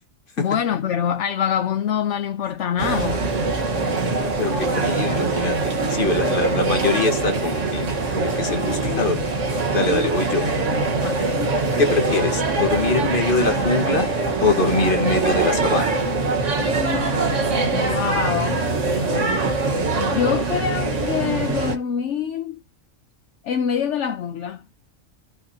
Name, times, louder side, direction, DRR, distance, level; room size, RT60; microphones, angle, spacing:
voice 1, 0.4-3.3 8.8-9.2 11.0-11.5 17.7-18.6 20.0-22.6 23.4-24.6, left 8 dB, 65° left, 1.0 m, -25 dB
sound 1, 2.8-21.8, right 3 dB, 65° right, 1.7 m, -23 dB
voice 2, 4.2-9.2 9.7-10.5 11.8-14.1 14.4-16.0, left 3 dB, 40° left, 1.7 m, -23 dB
sound 2, 13.4-14.0, left 4 dB, 90° left, 1.7 m, -39 dB
16.5 x 5.6 x 2.8 m
omnidirectional pair, 1.4 m